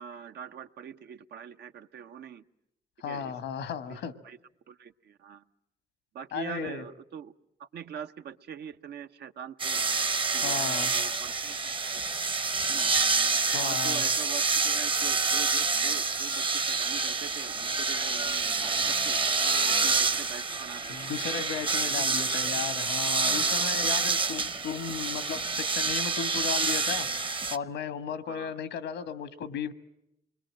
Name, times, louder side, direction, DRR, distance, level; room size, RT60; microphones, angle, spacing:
voice 1, 0.0-2.4 3.1-3.4 4.2-4.4 4.7-5.4 6.1-7.3 7.6-9.8 10.3-12.0 12.7-12.9 13.2-19.2 19.6-21.4 21.8-22.2 28.3-28.5, right 8 dB, 70° right, 8 dB, 0.9 m, -43 dB
voice 2, 3.0-4.1 6.3-6.8 10.4-10.9 13.5-14.0 20.9-29.7, left 7 dB, 85° left, 13 dB, 1.4 m, -35 dB
sound 1, 9.6-27.6, right 4 dB, 30° right, 0.9 m, -27 dB
sound 2, 16.9-23.6, right 5 dB, 90° right, 2.0 m, -54 dB
27.5 x 22.0 x 7.5 m, 0.83 s
cardioid pair, 75°, 18 cm